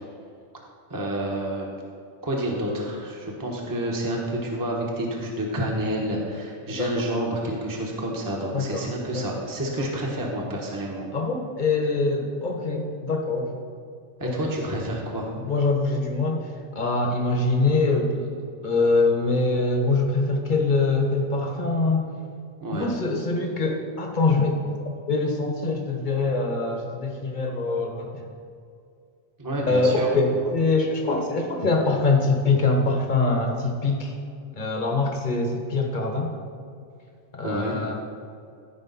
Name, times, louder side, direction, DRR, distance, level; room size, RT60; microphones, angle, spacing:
voice 1, 0.9-1.7 2.2-11.1 14.2-15.3 22.6-22.9 29.4-30.4 37.4-37.8, right 1 dB, 15° right, -2 dB, 1.1 m, -29 dB
voice 2, 8.5-8.8 9.1-9.2 9.7-9.9 11.1-13.6 14.2-14.5 15.5-18.3 18.6-22.1 22.7-24.6 25.1-28.3 29.7-34.1 34.6-36.3 37.3-38.0, left 3 dB, 35° left, 2 dB, 1.2 m, -24 dB
14.5 x 5.1 x 4.1 m, 2.4 s
omnidirectional pair, 1.4 m